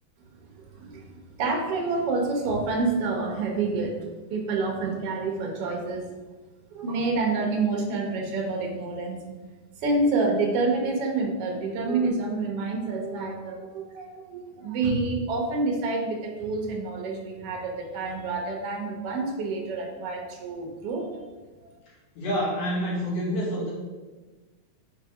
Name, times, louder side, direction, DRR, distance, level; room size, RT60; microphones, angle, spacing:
voice 1, 0.7-4.0 4.3-6.0 6.7-9.2 9.8-21.3, right 3 dB, 65° right, 1 dB, 1.5 m, -28 dB
voice 2, 22.1-23.7, equal, 65° left, -8 dB, 3.5 m, -27 dB
6.2 x 4.0 x 4.9 m, 1.3 s
omnidirectional pair, 3.7 m